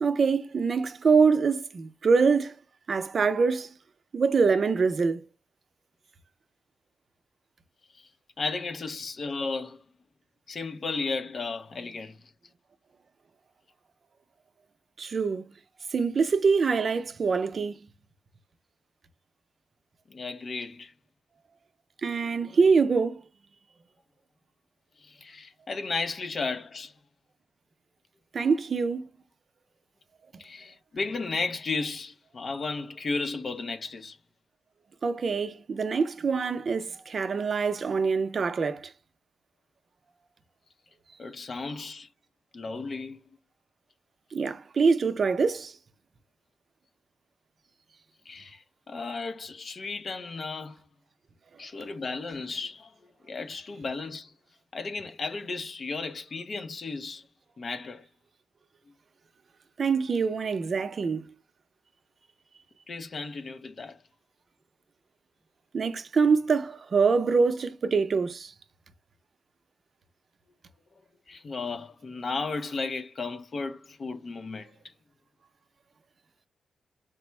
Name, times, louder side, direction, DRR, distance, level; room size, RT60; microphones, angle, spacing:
voice 1, 0.0-2.5 2.9-3.7 4.1-5.2 15.0-15.5 15.9-17.8 22.0-23.2 28.3-29.0 35.0-38.9 44.3-45.7 59.8-61.2 65.7-68.5, right 5 dB, 55° right, 0.5 m, -24 dB
voice 2, 8.4-9.8 10.5-12.1 20.1-20.9 25.1-26.9 30.4-34.2 41.2-42.1 42.5-43.2 48.3-50.8 51.6-52.9 53.3-54.3 54.7-57.2 57.6-58.0 62.9-64.0 71.3-74.7, left 4 dB, 50° left, 0.5 m, -34 dB
4.4 x 2.0 x 4.4 m
cardioid pair, 85°, 0 cm